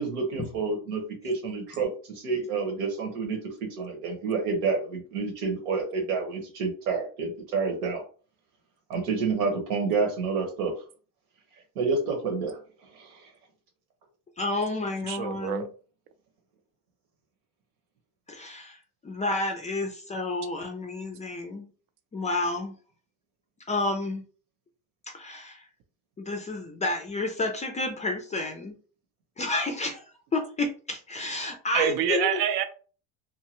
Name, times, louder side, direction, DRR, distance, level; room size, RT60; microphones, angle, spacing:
voice 1, 0.0-8.0 8.9-10.8 11.7-12.6 12.9-13.3, right 4 dB, 85° right, 3 dB, 1.2 m, -29 dB
voice 2, 14.4-15.7 18.3-18.8 19.0-21.7 22.1-22.7 23.7-24.2 25.1-25.6 26.2-28.7 29.4-30.0 30.3-32.4, left 2 dB, 20° left, 3 dB, 0.4 m, -30 dB
voice 3, 15.1-15.7 31.7-32.6, right 9 dB, 65° right, 9 dB, 0.7 m, -26 dB
2.8 x 2.2 x 2.9 m, 0.39 s
supercardioid pair, 110°, 43 cm